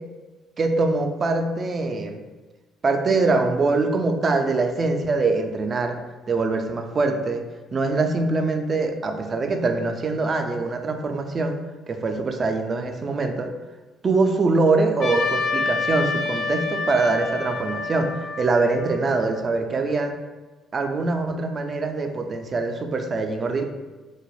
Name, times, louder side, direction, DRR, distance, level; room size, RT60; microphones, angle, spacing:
voice 1, 0.6-2.2 2.8-6.0 6.3-7.4 7.7-11.6 11.9-13.5 14.0-18.1 18.4-20.1 20.7-23.6, right 3 dB, 40° right, 5 dB, 0.3 m, -23 dB
Trumpet, 15.0-19.5, left 4 dB, 60° left, 0.4 m, -28 dB
2.2 x 2.1 x 3.0 m, 1.2 s
hypercardioid pair, 55°, 0 cm